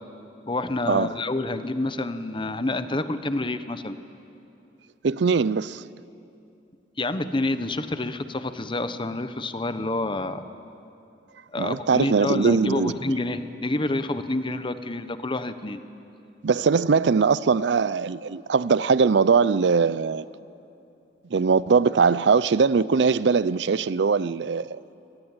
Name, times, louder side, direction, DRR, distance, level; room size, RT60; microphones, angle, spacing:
voice 1, 0.5-4.0 7.0-10.4 11.5-15.8, left 2 dB, 30° left, 1.0 m, -28 dB
voice 2, 5.0-5.8 11.6-12.9 16.4-20.3 21.3-24.8, right 5 dB, 75° right, 0.5 m, -21 dB
25.0 x 19.0 x 8.9 m
head